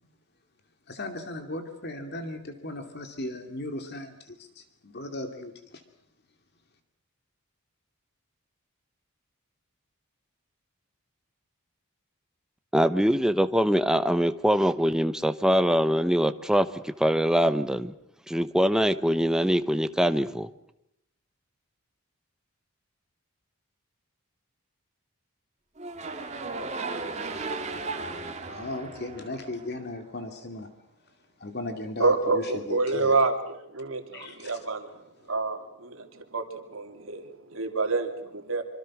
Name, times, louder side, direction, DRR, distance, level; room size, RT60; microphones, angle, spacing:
voice 1, 0.9-5.8 28.4-30.7 31.4-33.1 34.1-34.6, left 2 dB, 50° left, 6 dB, 2.6 m, -37 dB
voice 2, 12.7-17.9 18.3-20.5, equal, 5° right, 10 dB, 0.9 m, -23 dB
sound 1, 25.8-30.0, right 3 dB, 30° right, 2.4 m, -35 dB
voice 3, 32.0-35.0 35.3-38.6, right 3 dB, 65° right, 5 dB, 3.2 m, -28 dB
26.0 x 25.5 x 6.2 m, 0.78 s
head